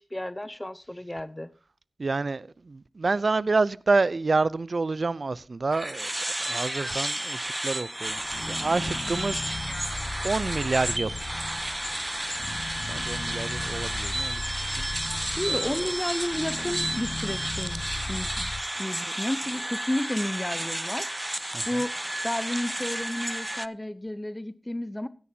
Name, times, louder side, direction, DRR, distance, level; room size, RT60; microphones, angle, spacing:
voice 1, 0.0-1.5 15.2-17.8 18.1-18.5 18.8-21.9 22.2-25.1, left 1 dB, 20° left, 0.7 m, -32 dB
voice 2, 2.0-6.1 6.5-9.5 10.2-11.2 12.8-15.9 21.5-21.8, right 3 dB, 65° right, 0.5 m, -28 dB
sound 1, 5.7-23.7, right 1 dB, 20° right, 0.5 m, -32 dB
sound 2, 8.0-18.3, left 2 dB, 40° left, 1.5 m, -44 dB
sound 3, 8.3-18.6, left 3 dB, 65° left, 0.7 m, -38 dB
16.0 x 11.0 x 2.8 m
cardioid pair, 40°, 0 cm